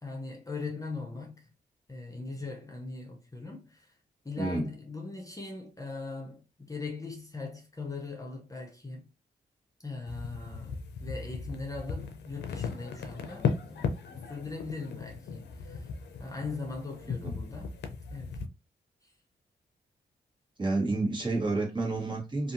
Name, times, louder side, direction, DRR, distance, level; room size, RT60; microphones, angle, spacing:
voice 1, 0.0-1.5 1.9-3.9 4.2-9.1 9.8-15.9 16.2-17.7 18.1-18.4 19.0-19.1, left 3 dB, 20° left, 0.7 m, -40 dB
sound 1, 10.1-18.5, left 5 dB, 80° left, 0.5 m, -37 dB
voice 2, 20.6-22.5, right 2 dB, 25° right, 1.4 m, -29 dB
2.6 x 2.5 x 2.6 m
cardioid pair, 50°, 17 cm